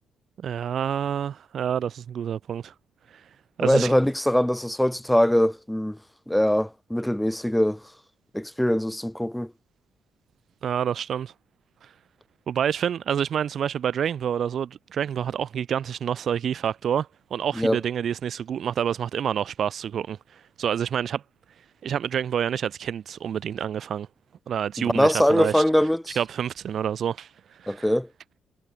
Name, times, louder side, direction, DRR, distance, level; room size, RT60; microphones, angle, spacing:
voice 1, 0.4-2.7 3.6-3.9 10.6-11.3 12.5-20.2 20.6-21.2 21.8-24.1 24.5-25.6 26.2-27.3 27.6-27.9, right 8 dB, 60° right, 4.4 m, -28 dB
voice 2, 3.6-6.0 6.3-7.8 8.3-9.5 17.6-17.8 24.8-26.2 27.7-28.1, equal, 5° left, 1.0 m, -22 dB
cardioid pair, 90°, 0 cm